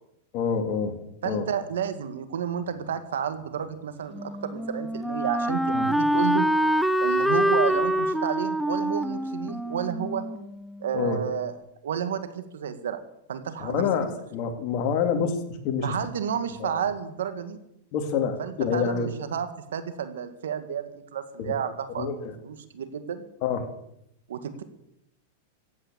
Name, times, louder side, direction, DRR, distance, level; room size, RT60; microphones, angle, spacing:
voice 1, 0.3-1.0 1.2-1.5 5.7-5.9 10.9-11.2 13.6-15.9 16.6-16.7 17.9-19.1 21.4-21.5 21.9-22.3 23.4-23.7, left 6 dB, 45° left, 5 dB, 2.7 m, -27 dB
voice 2, 1.2-6.5 7.0-10.3 10.8-11.5 11.8-13.0 13.3-13.8 15.8-17.6 18.4-22.1 22.4-23.2 24.3-24.6, right 8 dB, 90° right, 10 dB, 2.0 m, -31 dB
Wind instrument woodwind instrument, 4.1-11.0, equal, ahead, 0.6 m, -26 dB
15.5 x 9.2 x 8.7 m, 0.78 s
supercardioid pair, 140°, 0 cm